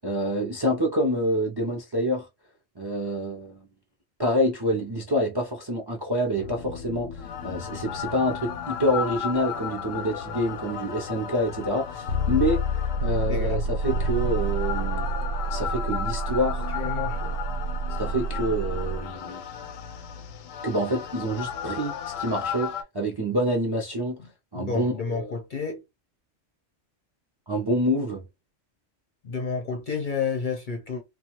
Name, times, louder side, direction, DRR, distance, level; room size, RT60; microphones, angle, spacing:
voice 1, 0.0-2.3 2.8-3.7 4.2-12.6 13.0-15.1 15.5-16.7 18.0-19.4 20.6-24.2 24.5-25.3 27.5-28.2, equal, 30° right, 0.4 m, -27 dB
sound 1, 6.4-22.8, left 2 dB, 85° left, 1.0 m, -30 dB
voice 2, 13.3-13.6 16.7-17.2 24.2-24.3 24.5-25.8 29.2-31.0, left 5 dB, 50° left, 0.6 m, -30 dB
2.3 x 2.3 x 2.9 m
omnidirectional pair, 1.3 m